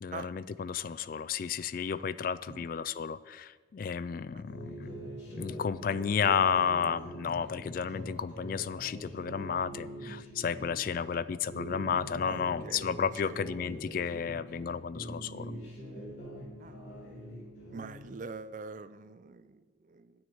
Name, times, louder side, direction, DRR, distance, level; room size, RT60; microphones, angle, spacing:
voice 1, 0.0-5.0 5.4-15.5, left 7 dB, 50° left, 17 dB, 0.3 m, -32 dB
sound 1, 4.5-11.0 11.4-14.7 14.9-18.1, right 1 dB, 65° left, 3.5 m, -44 dB
voice 2, 12.2-12.8 13.2-13.4 16.6-16.8 17.7-20.1, right 4 dB, 45° right, 14 dB, 0.5 m, -44 dB
9.8 x 6.4 x 8.7 m, 1.4 s
head